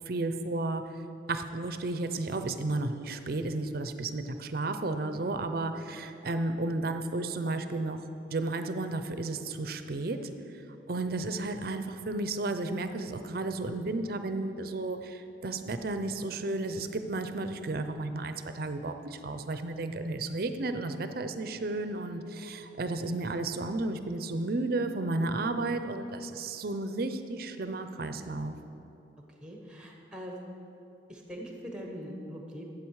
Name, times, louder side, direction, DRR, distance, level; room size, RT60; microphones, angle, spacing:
voice 1, 0.1-0.9 1.3-8.0 8.3-10.3 10.9-28.5, right 2 dB, 55° right, 9 dB, 0.6 m, -33 dB
voice 2, 29.4-30.4 31.1-32.7, equal, 5° right, 1 dB, 1.2 m, -42 dB
12.0 x 7.8 x 4.8 m, 2.8 s
head